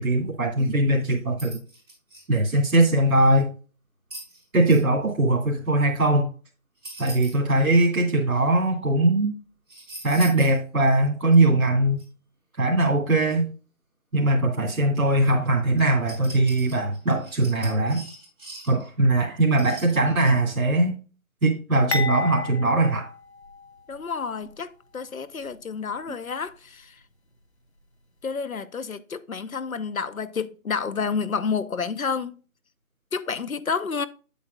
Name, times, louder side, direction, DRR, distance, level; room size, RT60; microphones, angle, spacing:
voice 1, 0.0-1.6 2.3-3.5 4.5-6.3 7.0-9.3 10.0-12.0 12.6-13.5 14.1-18.1 18.7-21.0 21.4-23.1, right 2 dB, 70° right, 2.5 m, -21 dB
sound 1, 0.9-1.0 1.4-2.2 3.3-3.4 4.1-4.8 6.8-7.7 9.7-10.6 11.0-11.1 12.0-12.1 15.8-18.9 19.6-20.0, right 2 dB, 10° right, 4.2 m, -42 dB
sound 2, 21.9-24.1 24.4-24.6 25.5-25.6, left 3 dB, 50° left, 1.2 m, -32 dB
voice 2, 23.9-26.9 28.2-32.4 33.1-34.1, left 5 dB, 70° left, 1.0 m, -30 dB
8.7 x 8.4 x 2.3 m
figure-of-eight pair, 180°, 43 cm